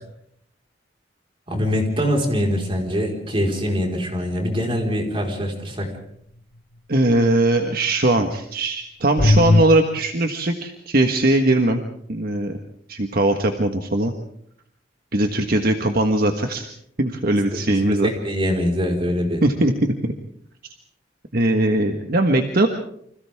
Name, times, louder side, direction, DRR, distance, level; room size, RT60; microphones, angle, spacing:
voice 1, 1.5-5.9 17.5-17.6 18.0-19.4, equal, 30° right, 1 dB, 4.7 m, -23 dB
voice 2, 6.9-11.8 12.1-12.6 12.9-14.1 15.1-16.7 17.0-18.1 19.4-20.1 21.3-22.7, right 1 dB, 55° right, 5 dB, 1.5 m, -20 dB
sound 1, 9.2-9.6, left 2 dB, 50° left, 1.1 m, -15 dB
30.0 x 26.0 x 3.6 m, 0.69 s
head